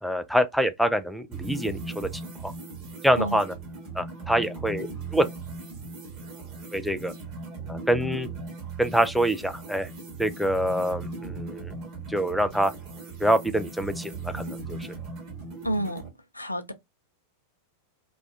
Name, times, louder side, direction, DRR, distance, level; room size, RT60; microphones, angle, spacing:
voice 1, 0.0-2.1 2.4-2.5 3.0-3.5 4.0-5.3 6.7-7.1 7.7-8.3 8.8-9.9 10.2-11.7 12.1-12.7 13.2-14.8, equal, ahead, 0.3 m, -25 dB
sound 1, 1.3-16.1, right 3 dB, 40° right, 1.1 m, -38 dB
voice 2, 15.6-16.1 16.3-16.7, right 1 dB, 85° left, 0.4 m, -29 dB
2.3 x 2.2 x 2.5 m
figure-of-eight pair, 90°, 0 cm